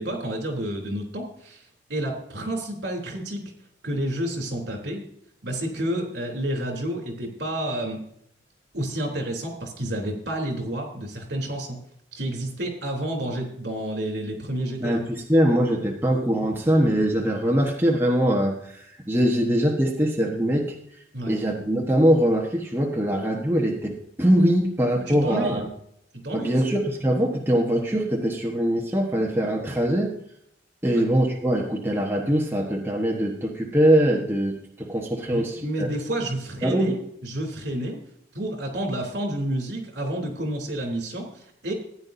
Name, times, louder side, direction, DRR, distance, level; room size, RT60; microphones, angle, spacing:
voice 1, 0.0-3.4 3.8-5.0 5.4-8.0 8.7-11.8 12.1-15.0 21.1-21.3 25.0-25.6 26.2-26.7 30.9-31.1 35.3-38.0 38.3-41.7, right 1 dB, 65° right, 1 dB, 3.3 m, -30 dB
voice 2, 15.3-20.7 21.3-25.7 26.3-30.1 30.8-35.9 36.6-36.9, equal, 10° right, -1 dB, 1.2 m, -22 dB
15.0 x 9.8 x 2.7 m, 0.69 s
head